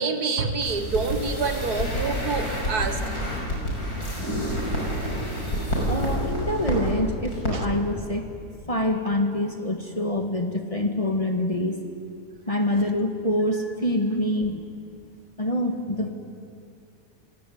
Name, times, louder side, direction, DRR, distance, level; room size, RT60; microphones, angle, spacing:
voice 1, 0.0-3.0 7.5-7.6, right 4 dB, 65° right, 7 dB, 2.1 m, -27 dB
sound 1, 0.6-6.9 7.2-7.5 7.8-7.9, equal, 65° left, 6.6 m, -28 dB
voice 2, 5.9-8.3 8.7-11.8 12.5-14.7 15.4-16.1, left 1 dB, 20° left, 4 dB, 1.9 m, -25 dB
29.0 x 17.5 x 9.5 m, 2.4 s
omnidirectional pair, 1.8 m